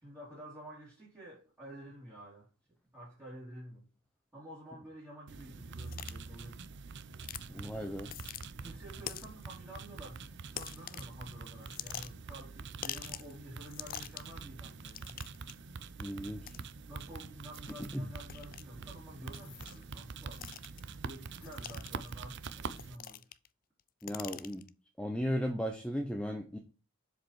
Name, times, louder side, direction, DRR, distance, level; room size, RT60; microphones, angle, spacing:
voice 1, 0.0-2.5 2.9-3.9 4.3-6.7 8.6-15.2 16.8-20.5 20.9-23.3, right 1 dB, 15° right, 3.2 m, -50 dB
sound 1, 5.3-23.0, right 4 dB, 55° right, 0.6 m, -45 dB
sound 2, 5.8-6.1 7.2-7.5 8.0-8.5 9.1-9.4 10.5-11.1 11.6-12.3 12.8-13.3 13.6-14.3 14.8-15.5 16.4-16.6 17.5-17.7 18.3-18.6 19.3-19.8 20.3-20.8 21.4-22.1 22.7-23.5 23.8-24.7, left 11 dB, 40° left, 0.4 m, -44 dB
voice 2, 7.5-8.1 16.0-16.6 17.9-18.1 24.0-24.6 25.0-26.6, equal, 5° left, 0.8 m, -36 dB
7.4 x 5.1 x 4.7 m
head